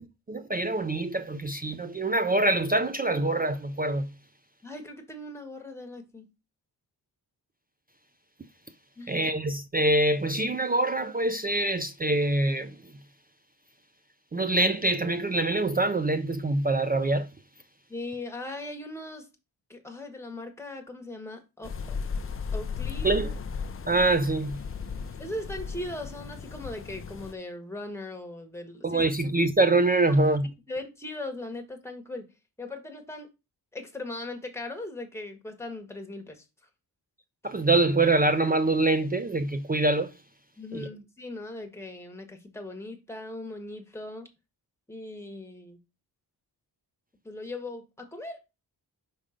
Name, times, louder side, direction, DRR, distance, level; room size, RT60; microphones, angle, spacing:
voice 1, 0.0-4.1 9.1-12.8 14.3-17.3 23.0-23.3 23.9-24.6 28.8-30.5 37.4-40.1 40.7-40.9, right 2 dB, 25° right, 0.4 m, -25 dB
voice 2, 4.6-6.3 9.0-9.2 17.9-19.3 19.7-22.0 22.2-23.1 25.2-29.0 30.7-32.2 32.6-33.3 33.7-36.4 40.6-44.3 44.9-45.8 47.2-48.4, left 2 dB, 5° left, 1.3 m, -39 dB
sound 1, 21.6-27.3, left 5 dB, 30° left, 0.6 m, -35 dB
5.5 x 3.7 x 4.9 m
wide cardioid pair, 100°, 41 cm